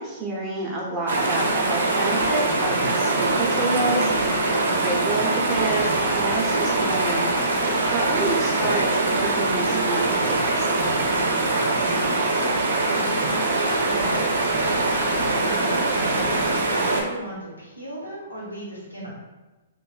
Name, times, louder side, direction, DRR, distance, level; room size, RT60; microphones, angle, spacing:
voice 1, 0.0-7.3 7.8-8.9 9.1-10.7 15.5-15.8, right 2 dB, 15° right, -4 dB, 0.8 m, -29 dB
sound 1, 1.1-17.0, right 2 dB, 65° right, 0.5 m, -23 dB
sound 2, 1.9-17.2, left 1 dB, 40° left, 0.6 m, -38 dB
voice 2, 11.7-12.6 12.9-15.0 15.9-19.1, equal, 85° left, -5 dB, 1.1 m, -36 dB
3.0 x 2.4 x 2.4 m, 1.1 s
figure-of-eight pair, 120°, 0 cm